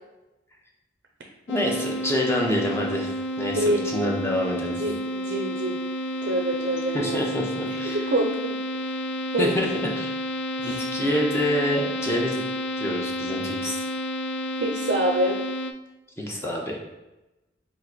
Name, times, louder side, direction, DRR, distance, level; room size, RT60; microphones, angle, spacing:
sound 1, 1.5-15.7, equal, 75° left, 0.4 m, -30 dB
voice 1, 1.5-3.1 3.4-4.8 6.9-8.0 9.4-10.1 10.6-12.4 12.8-13.8 16.2-16.8, equal, 15° left, -2 dB, 0.7 m, -27 dB
voice 2, 3.5-3.8 4.8-5.8 6.2-7.2 7.7-8.6 8.8-8.9 9.3-9.6 10.6-10.8 14.6-15.4, right 1 dB, 65° right, 1 dB, 0.5 m, -26 dB
3.7 x 2.5 x 4.5 m, 1.0 s
head